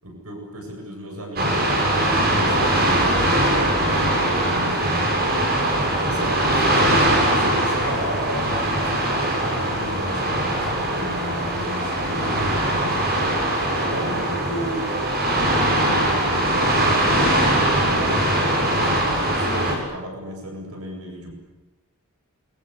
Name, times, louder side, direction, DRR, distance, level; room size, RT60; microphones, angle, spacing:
voice 1, 0.0-5.4 6.0-13.4 13.7-15.0 15.3-17.3 17.8-21.3, right 1 dB, 75° right, 2 dB, 8.0 m, -34 dB
sound 1, 1.4-19.8, right 1 dB, 45° right, 7.6 m, -21 dB
28.5 x 24.0 x 8.3 m, 1.1 s
head